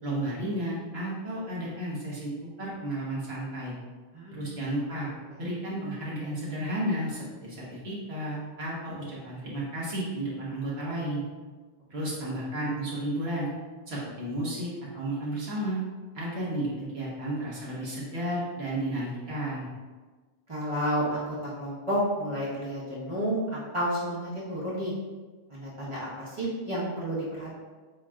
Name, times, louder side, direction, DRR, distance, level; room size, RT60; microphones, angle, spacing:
voice 1, 0.0-2.3 2.6-3.7 4.3-5.1 5.4-11.2 11.9-13.5 13.9-15.8 16.1-19.7, right 1 dB, 80° right, -6 dB, 1.5 m, -32 dB
voice 2, 4.1-4.5 5.3-5.4 12.2-12.3 20.5-24.9 25.5-27.5, equal, 30° right, -9 dB, 1.3 m, -31 dB
7.0 x 2.8 x 2.4 m, 1.4 s
omnidirectional pair, 1.0 m